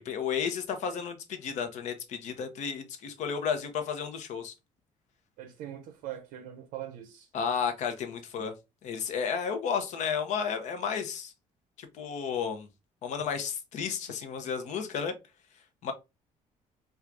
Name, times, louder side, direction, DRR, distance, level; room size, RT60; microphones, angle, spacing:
voice 1, 0.0-4.5 7.3-8.5 8.8-11.3 11.8-12.7 13.0-15.1 15.8-15.9, left 6 dB, 60° left, 0.7 m, -32 dB
voice 2, 5.4-7.3, right 11 dB, 90° right, 0.5 m, -41 dB
4.5 x 2.3 x 2.5 m
cardioid pair, 150°, 13 cm